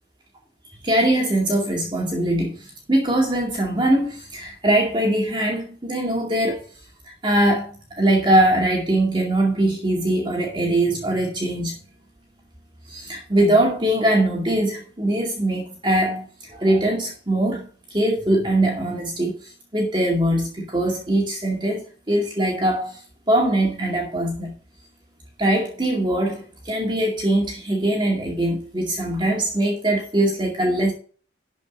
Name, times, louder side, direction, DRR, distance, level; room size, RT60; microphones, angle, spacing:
voice 1, 0.8-6.7 7.2-11.8 12.9-23.0 23.3-24.6 25.4-30.9, right 1 dB, 25° right, 2.3 m, -22 dB
12.0 x 5.2 x 5.4 m
head